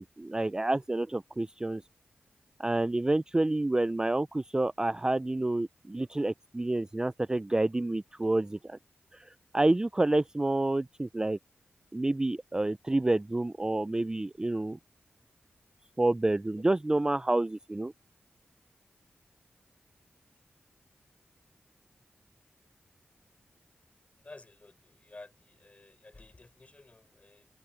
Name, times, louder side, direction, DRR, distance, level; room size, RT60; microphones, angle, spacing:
voice 1, 0.0-1.8 2.6-8.8 9.1-9.2 9.5-11.4 11.9-14.8 16.0-17.9, right 2 dB, 20° right, 0.4 m, -28 dB
voice 2, 24.2-27.5, left 2 dB, 35° left, 5.5 m, -53 dB
wide cardioid pair, 85°, 4 cm